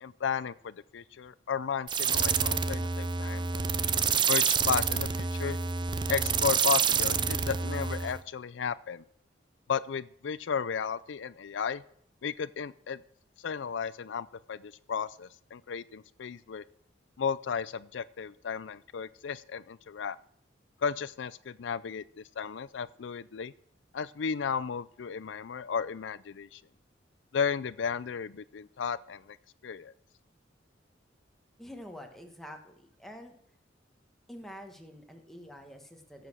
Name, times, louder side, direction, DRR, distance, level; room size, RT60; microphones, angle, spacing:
voice 1, 0.0-3.7 4.3-5.6 6.1-9.0 9.7-11.8 12.2-13.0 13.4-16.6 17.2-20.2 20.8-23.5 23.9-26.6 27.3-29.4 29.6-29.9, left 6 dB, 80° left, 16 dB, 0.4 m, -34 dB
sound 1, 1.9-8.2, right 6 dB, 25° right, 0.5 m, -28 dB
voice 2, 31.6-33.4 34.3-36.3, equal, ahead, 3 dB, 1.5 m, -47 dB
15.5 x 7.7 x 6.2 m, 0.67 s
head